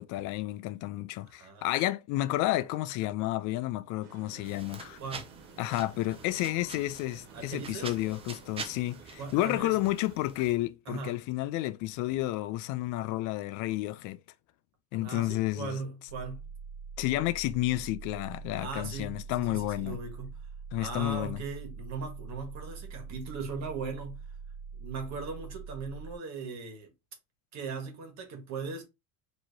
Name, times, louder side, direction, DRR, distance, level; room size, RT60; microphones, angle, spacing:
voice 1, 0.0-5.0 5.6-14.2 14.9-15.8 17.0-20.0 20.7-21.4, left 16 dB, 50° left, 0.5 m, -31 dB
voice 2, 1.3-1.7 5.0-5.3 7.3-7.9 9.2-9.8 10.8-11.2 14.9-16.5 18.6-20.5 20.7-24.3 24.7-26.9 27.5-28.8, right 4 dB, 40° right, 1.5 m, -39 dB
sound 1, 4.0-10.2, right 6 dB, 60° right, 1.4 m, -53 dB
sound 2, 4.4-10.6, right 5 dB, 15° right, 0.4 m, -46 dB
sound 3, 16.1-26.1, right 5 dB, 80° right, 0.8 m, -44 dB
4.7 x 3.0 x 2.7 m
supercardioid pair, 135°, 41 cm